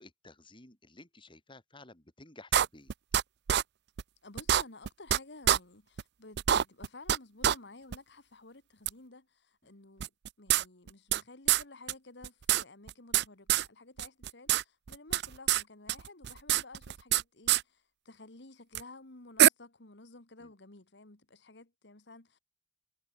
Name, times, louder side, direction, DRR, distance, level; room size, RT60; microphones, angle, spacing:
voice 1, 0.0-2.9 9.6-9.7 20.4-20.5, left 2 dB, 30° left, 4.9 m, -54 dB
sound 1, 2.5-3.2 3.5-3.6 4.0-4.1 4.4-5.2 5.5-5.6 6.0-6.1 6.4-7.2 7.4-7.6 7.9-8.0 8.9-9.0 10.0-11.2 11.5-11.6 11.9-12.0 12.2-13.2 13.5-13.7 14.0-14.6 14.9-15.6 15.9-17.2 17.5-17.6 18.8-18.9 19.4-19.5, right 11 dB, 65° right, 0.4 m, -25 dB
voice 2, 4.2-10.1 10.4-22.4, left 2 dB, 70° left, 2.2 m, -53 dB
head